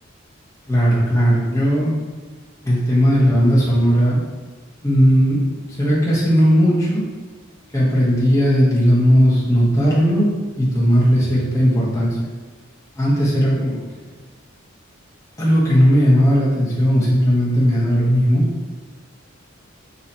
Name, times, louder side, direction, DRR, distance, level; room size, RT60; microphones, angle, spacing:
voice 1, 0.7-1.9 2.6-4.2 4.8-5.4 5.8-7.1 7.7-12.3 13.0-13.8 15.4-18.4, equal, 15° left, -6 dB, 1.1 m, -16 dB
3.9 x 2.8 x 4.3 m, 1.4 s
head